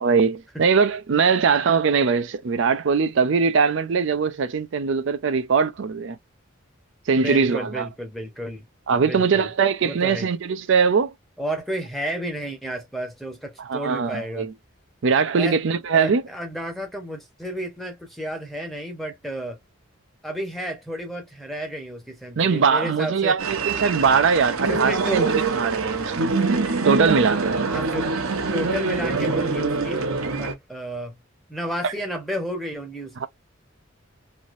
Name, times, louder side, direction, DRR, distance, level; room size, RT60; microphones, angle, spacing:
voice 1, 0.0-6.2 7.1-7.9 8.9-11.1 13.6-14.5 15.0-16.2 22.4-26.3 26.8-27.6 31.8-31.9 33.2-33.3, right 5 dB, 60° right, 0.4 m, -21 dB
voice 2, 7.2-8.7 9.0-9.5 9.8-10.3 11.4-14.5 15.3-15.6 15.9-19.6 20.2-23.4 24.7-25.3 27.7-28.1 28.5-30.1 30.4-31.2 31.5-33.3, equal, ahead, 0.9 m, -31 dB
sound 1, 23.4-30.5, right 4 dB, 85° right, 0.9 m, -24 dB
3.2 x 2.7 x 2.5 m
head